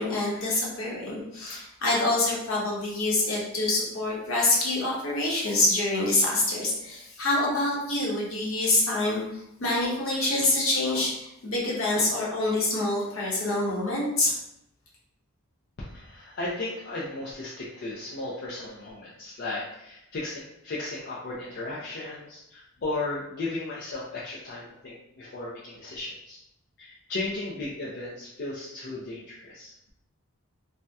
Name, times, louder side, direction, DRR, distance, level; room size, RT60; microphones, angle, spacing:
voice 1, 0.0-14.4, left 2 dB, 65° left, -4 dB, 0.9 m, -26 dB
voice 2, 15.8-26.4 26.8-29.7, left 2 dB, 50° left, -6 dB, 0.4 m, -35 dB
2.7 x 2.1 x 3.3 m, 0.82 s
head